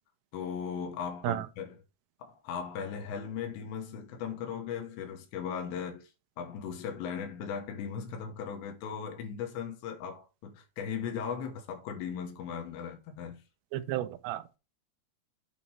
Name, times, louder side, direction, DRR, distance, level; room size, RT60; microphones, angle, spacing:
voice 1, 0.3-1.8 2.2-6.1 6.4-13.4, left 7 dB, 80° left, 3.4 m, -38 dB
voice 2, 13.7-14.6, right 14 dB, 85° right, 2.9 m, -33 dB
8.4 x 3.0 x 5.5 m
omnidirectional pair, 5.0 m